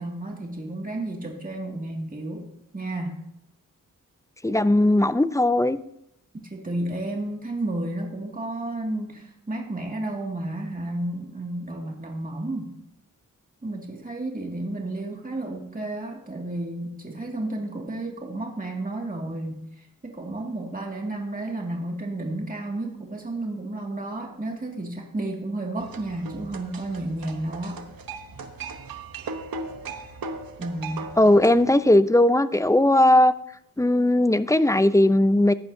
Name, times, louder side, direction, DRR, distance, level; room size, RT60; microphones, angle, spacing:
voice 1, 0.0-2.5 2.7-3.2 6.3-12.7 13.6-27.8 30.6-31.1, right 2 dB, 25° right, 0 dB, 2.1 m, -32 dB
voice 2, 4.4-5.8 31.2-33.3 33.8-35.5, left 1 dB, 10° left, 13 dB, 0.5 m, -18 dB
sound 1, 25.8-31.7, right 4 dB, 90° right, 1.0 m, -38 dB
15.0 x 10.5 x 2.7 m, 0.78 s
cardioid pair, 55°, 34 cm